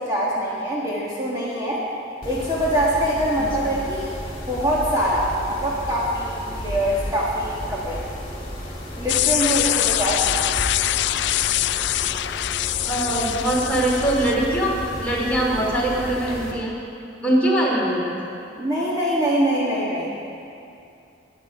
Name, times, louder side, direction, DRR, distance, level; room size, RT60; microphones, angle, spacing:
voice 1, 0.0-1.8 2.2-4.1 4.5-8.0 8.9-10.4 18.6-20.1, equal, 20° right, -7 dB, 1.6 m, -24 dB
Mechanisms, 2.2-16.5, equal, 30° left, 2.5 m, -33 dB
sound 1, 9.1-14.5, left 14 dB, 60° left, 0.3 m, -24 dB
voice 2, 12.8-16.7 17.2-18.2, right 1 dB, 10° left, -5 dB, 2.8 m, -22 dB
21.0 x 9.1 x 5.0 m, 2.6 s
head